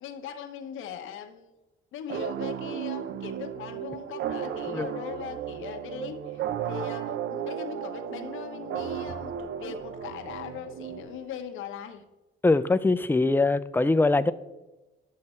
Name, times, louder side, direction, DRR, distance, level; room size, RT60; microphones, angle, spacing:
voice 1, 0.0-1.5 1.9-12.0, left 8 dB, 85° left, 0.9 m, -40 dB
sound 1, 2.1-11.5, right 9 dB, 65° right, 0.6 m, -34 dB
voice 2, 12.4-14.3, left 3 dB, 10° left, 0.4 m, -22 dB
10.0 x 6.6 x 4.3 m
cardioid pair, 90°, 20 cm